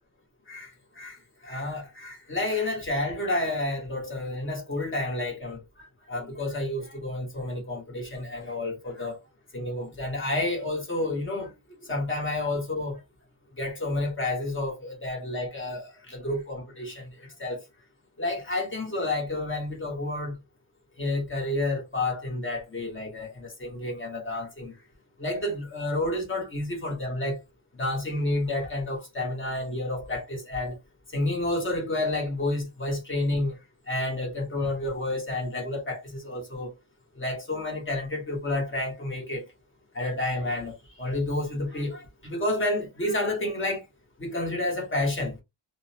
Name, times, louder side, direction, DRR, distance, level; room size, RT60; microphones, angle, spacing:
voice 1, 1.4-5.6 6.1-9.2 9.5-11.5 11.8-13.0 13.6-17.6 18.2-20.4 21.0-24.7 25.2-27.4 27.7-30.8 31.1-33.6 33.9-36.7 37.2-39.4 39.9-43.8 44.2-45.4, left 2 dB, 25° left, 0.9 m, -30 dB
2.4 x 2.0 x 2.7 m
wide cardioid pair, 175°, 48 cm